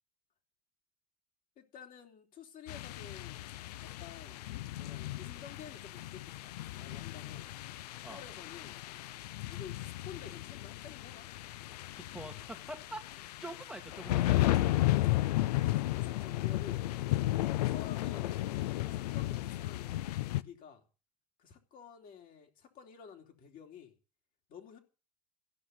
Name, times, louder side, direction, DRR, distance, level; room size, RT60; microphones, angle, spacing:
voice 1, 1.6-7.5 8.1-8.8 9.5-11.3 14.5-16.9 17.4-20.8 21.4-24.0 24.5-24.8, left 7 dB, 45° left, 3.9 m, -52 dB
sound 1, 2.7-20.4, left 16 dB, 80° left, 0.7 m, -34 dB
voice 2, 11.9-14.8, right 1 dB, 5° right, 2.0 m, -46 dB
16.0 x 6.2 x 9.6 m
supercardioid pair, 105°, 20 cm